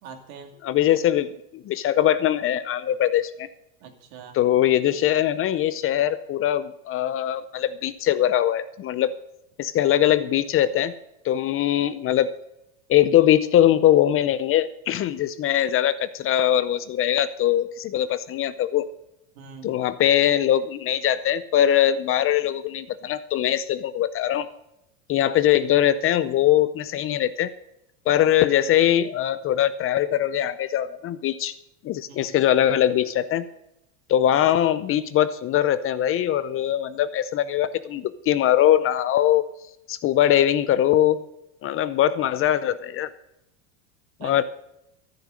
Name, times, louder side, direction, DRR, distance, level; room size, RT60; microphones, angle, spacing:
voice 1, 0.0-0.5 3.8-4.4 19.3-19.7 32.1-32.3 44.2-44.4, right 5 dB, 70° right, 4 dB, 2.7 m, -42 dB
voice 2, 0.6-3.5 4.3-9.1 9.6-10.9 11.2-12.3 12.9-18.9 19.6-24.5 25.1-27.5 28.1-31.5 31.8-33.4 34.1-39.5 39.9-41.2 41.6-43.1 44.2-44.4, left 11 dB, 30° left, 14 dB, 0.6 m, -21 dB
13.0 x 11.0 x 6.4 m, 0.82 s
supercardioid pair, 120°, 42 cm